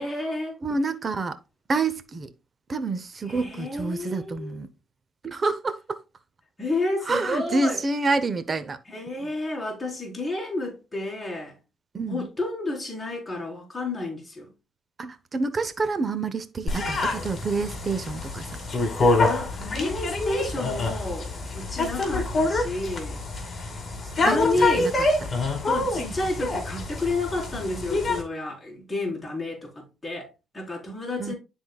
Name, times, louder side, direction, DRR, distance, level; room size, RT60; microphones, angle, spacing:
voice 1, 0.0-0.6 3.3-4.6 6.6-7.8 8.9-11.6 12.1-14.5 19.2-23.2 24.2-24.9 25.7-31.4, left 2 dB, 10° left, 4.0 m, -31 dB
voice 2, 0.6-1.4 1.7-2.3 2.7-4.7 5.2-6.0 7.0-8.8 11.9-12.3 15.0-18.6 24.3-25.1 31.2-31.3, right 3 dB, 35° right, 0.8 m, -28 dB
sound 1, 16.7-28.2, left 2 dB, 35° left, 2.3 m, -26 dB
12.0 x 4.0 x 2.3 m
cardioid pair, 90°, 0 cm